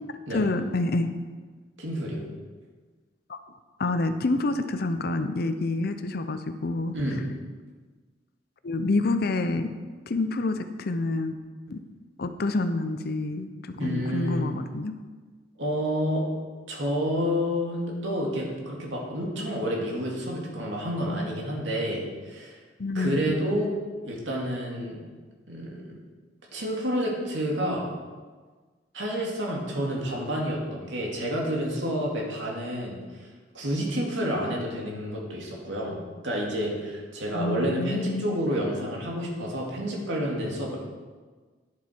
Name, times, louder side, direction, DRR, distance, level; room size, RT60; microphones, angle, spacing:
voice 1, 0.3-1.1 3.3-3.4 3.8-7.0 8.6-9.7 10.1-11.4 11.7-11.8 12.2-14.9 22.8-23.6 37.3-38.4, left 2 dB, 55° left, 9 dB, 0.6 m, -28 dB
voice 2, 1.8-2.2 6.9-7.2 13.8-14.5 15.6-16.2 16.7-22.5 22.9-23.7 24.0-25.0 25.5-26.0 26.5-27.9 28.9-33.0 33.5-36.0 36.2-40.8, equal, 85° right, -2 dB, 2.3 m, -29 dB
10.5 x 7.4 x 4.5 m, 1.4 s
head